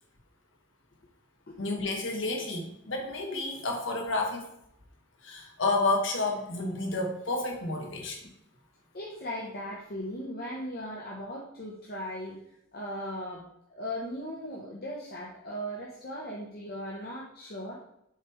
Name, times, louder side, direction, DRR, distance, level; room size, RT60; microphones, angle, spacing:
voice 1, 1.6-4.4 5.2-8.2, left 2 dB, 65° left, 1 dB, 1.2 m, -30 dB
voice 2, 8.9-12.4 12.7-17.8, equal, 45° left, -3 dB, 0.9 m, -38 dB
6.6 x 3.3 x 4.5 m, 0.77 s
head